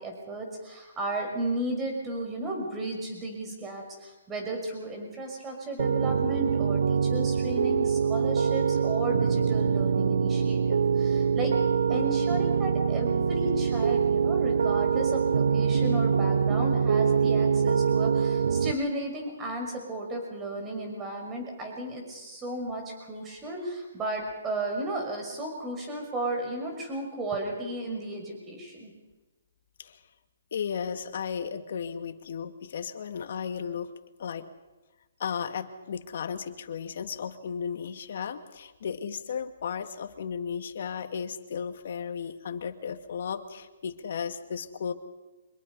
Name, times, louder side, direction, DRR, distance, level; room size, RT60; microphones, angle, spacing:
voice 1, 0.0-11.5 11.9-28.9, right 1 dB, 15° right, 1 dB, 5.9 m, -34 dB
Piano, 5.8-18.7, right 6 dB, 85° right, 0.7 m, -24 dB
voice 2, 30.5-33.9 34.2-34.4 35.2-44.9, left 7 dB, 60° left, 8 dB, 2.2 m, -34 dB
26.0 x 21.5 x 5.5 m, 1.2 s
hypercardioid pair, 155°, 0 cm